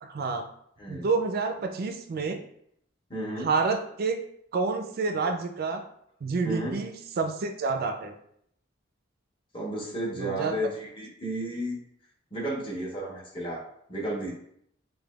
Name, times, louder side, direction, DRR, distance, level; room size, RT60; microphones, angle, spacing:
voice 1, 0.0-0.4 0.9-2.4 3.4-4.2 4.5-5.8 6.2-8.1 10.2-10.5, right 4 dB, 50° right, 6 dB, 0.4 m, -28 dB
voice 2, 3.1-3.5 6.4-6.8 9.5-11.8 12.3-13.6 13.9-14.3, right 1 dB, 25° left, -3 dB, 0.9 m, -32 dB
4.9 x 2.2 x 2.3 m, 0.69 s
head